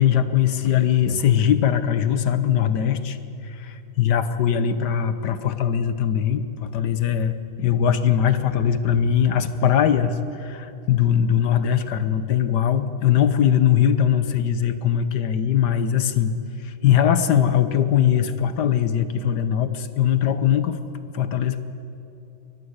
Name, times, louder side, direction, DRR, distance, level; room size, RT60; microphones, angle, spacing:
voice 1, 0.0-3.2 3.5-7.3 7.6-16.3 16.6-20.8 21.1-21.6, left 9 dB, 70° left, 12 dB, 1.6 m, -21 dB
23.0 x 19.0 x 8.1 m, 2.8 s
omnidirectional pair, 1.9 m